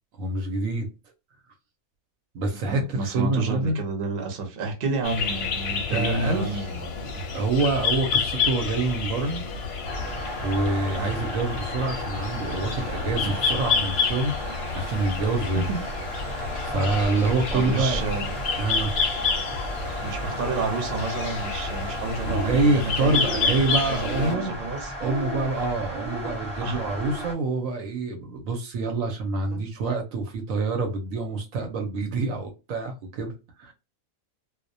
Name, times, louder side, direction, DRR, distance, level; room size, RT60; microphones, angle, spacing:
voice 1, 0.2-0.9 2.3-3.8 5.8-6.7 7.3-9.4 10.4-15.7 16.3-18.0 18.6-18.9 22.2-24.5 25.0-33.7, right 3 dB, 75° right, 1.0 m, -26 dB
voice 2, 2.7-7.2 10.9-11.1 15.5-15.8 16.7-16.9 17.5-18.3 20.0-24.9 26.6-26.9 29.5-29.7, right 3 dB, 50° right, 0.8 m, -30 dB
sound 1, 5.0-24.3, left 5 dB, 60° left, 0.7 m, -29 dB
sound 2, 9.8-27.3, equal, 10° left, 0.4 m, -35 dB
sound 3, 22.1-22.7 23.0-23.6 24.0-24.5 25.0-25.5 25.9-26.4 26.8-27.2, right 1 dB, 30° right, 0.9 m, -35 dB
2.3 x 2.1 x 2.6 m
omnidirectional pair, 1.5 m